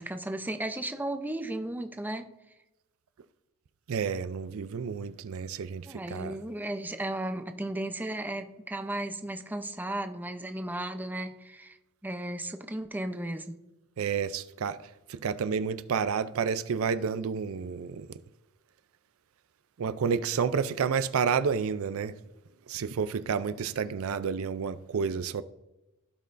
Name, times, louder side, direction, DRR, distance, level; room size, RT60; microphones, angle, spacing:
voice 1, 0.0-2.2 5.8-11.8 12.0-13.5, right 1 dB, 10° right, 0.6 m, -35 dB
voice 2, 3.9-6.4 14.0-14.8 15.1-18.1 19.8-22.1 22.7-25.4, right 6 dB, 65° right, 0.4 m, -30 dB
16.0 x 5.4 x 2.5 m
head